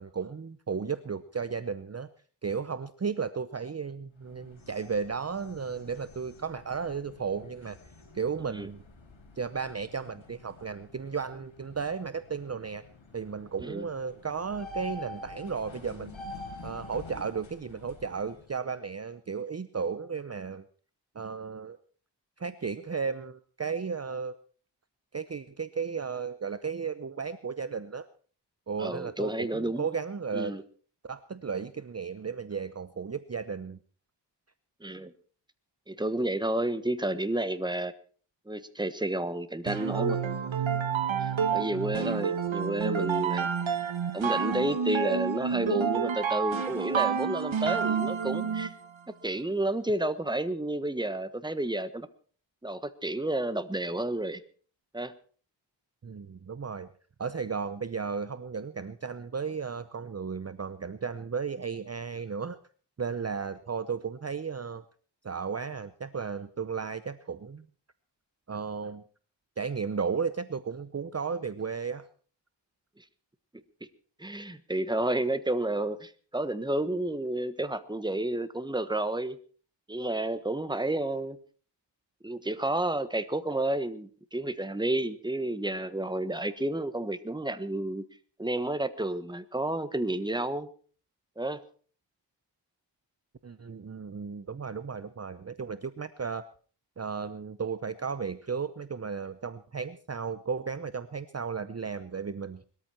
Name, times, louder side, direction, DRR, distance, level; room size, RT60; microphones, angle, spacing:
voice 1, 0.0-2.1 2.4-7.8 8.1-8.8 9.4-12.8 13.1-16.2 16.6-20.6 21.1-21.8 22.4-24.4 25.1-28.1 28.7-30.5 31.0-33.8 56.0-56.9 57.2-62.6 63.0-64.8 65.2-67.7 68.5-69.0 69.6-72.1 93.4-96.4 97.0-102.6, right 5 dB, 35° right, 13 dB, 0.7 m, -34 dB
sound 1, 4.1-18.5, left 2 dB, 85° left, 4.2 m, -48 dB
voice 2, 28.8-29.9 30.3-30.6 34.8-35.1 35.9-37.9 38.5-40.2 41.2-43.5 44.1-48.7 49.1-52.1 52.6-54.4 54.9-55.1 73.0-73.1 74.2-79.4 79.9-81.4 82.2-88.0 88.4-90.7 91.4-91.6, right 1 dB, 10° right, 12 dB, 1.3 m, -31 dB
sound 2, 39.7-48.8, right 7 dB, 85° right, 1.6 m, -29 dB
21.0 x 13.5 x 4.4 m, 0.42 s
wide cardioid pair, 70°, 45 cm